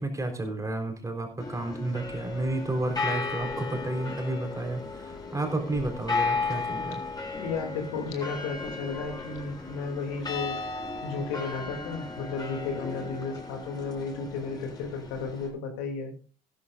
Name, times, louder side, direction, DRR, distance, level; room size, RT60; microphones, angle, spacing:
voice 1, 0.0-7.0, right 2 dB, 15° right, 4 dB, 3.9 m, -31 dB
sound 1, 1.4-15.5, left 4 dB, 20° left, 4.4 m, -35 dB
voice 2, 7.4-16.1, left 4 dB, 65° left, 4 dB, 2.7 m, -34 dB
15.5 x 12.5 x 2.5 m, 0.38 s
hypercardioid pair, 65°, 21 cm